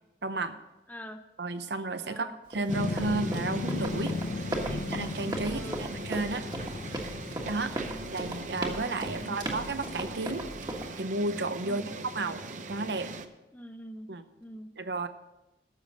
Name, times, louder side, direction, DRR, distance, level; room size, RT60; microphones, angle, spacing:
voice 1, 0.2-0.6 1.4-4.2 4.7-6.4 7.4-7.7 8.1-10.5 11.0-11.8 12.1-12.4 12.7-13.1 14.1-14.2 14.8-15.1, right 2 dB, 75° right, 10 dB, 0.8 m, -32 dB
voice 2, 0.9-1.2 2.1-2.4 4.5-4.8 5.5-5.9 7.6-8.0 9.1-9.4 11.6-12.0 13.5-14.1 14.4-14.7, equal, 10° left, 7 dB, 0.7 m, -44 dB
Run, 2.5-11.0, right 1 dB, 25° right, 1.5 m, -37 dB
sound 1, 2.7-10.0, left 3 dB, 45° left, 0.4 m, -37 dB
sound 2, 2.7-13.3, right 3 dB, 45° right, 0.7 m, -41 dB
13.0 x 7.0 x 6.5 m, 0.96 s
head